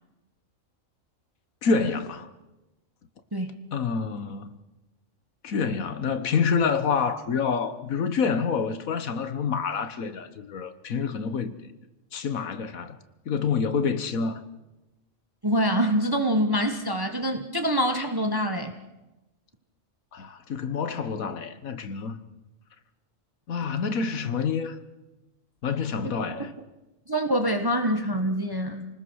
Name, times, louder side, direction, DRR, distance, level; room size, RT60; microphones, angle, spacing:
voice 1, 1.6-2.3 3.7-4.5 5.4-11.7 12.1-13.0 13.3-14.4 20.1-22.2 23.5-24.8 25.6-26.5, left 5 dB, 90° left, 1.6 m, -27 dB
voice 2, 15.4-18.7 26.3-26.4 27.1-28.9, equal, 15° right, 1.3 m, -25 dB
29.0 x 19.5 x 6.4 m
omnidirectional pair, 1.4 m